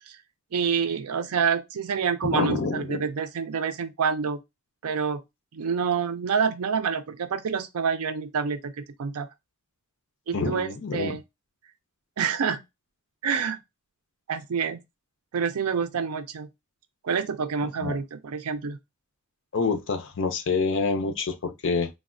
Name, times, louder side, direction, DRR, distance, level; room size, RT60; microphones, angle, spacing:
voice 1, 0.5-4.4 4.8-5.2 5.5-9.3 10.3-11.2 12.2-12.6 13.2-13.6 14.3-14.8 15.3-16.5 17.0-18.8, right 6 dB, 85° right, 0.5 m, -27 dB
voice 2, 2.3-3.0 10.3-11.2 17.8-18.0 19.5-21.9, left 4 dB, 60° left, 0.5 m, -27 dB
3.2 x 2.1 x 2.5 m
head